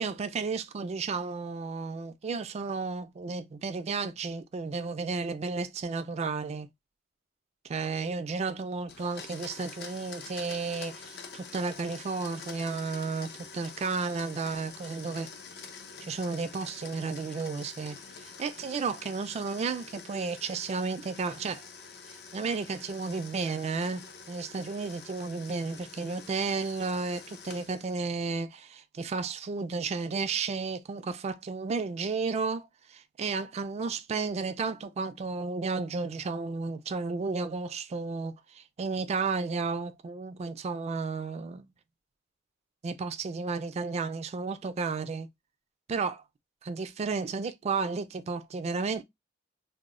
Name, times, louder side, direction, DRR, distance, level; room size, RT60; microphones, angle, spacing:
voice 1, 0.0-6.7 7.6-15.3 16.0-21.7 22.1-41.7 42.8-45.3 45.9-46.2 46.6-49.0, right 4 dB, 35° right, 0.3 m, -33 dB
Domestic sounds home sounds, 8.9-28.1, left 5 dB, 60° left, 0.5 m, -47 dB
2.1 x 2.0 x 3.5 m
head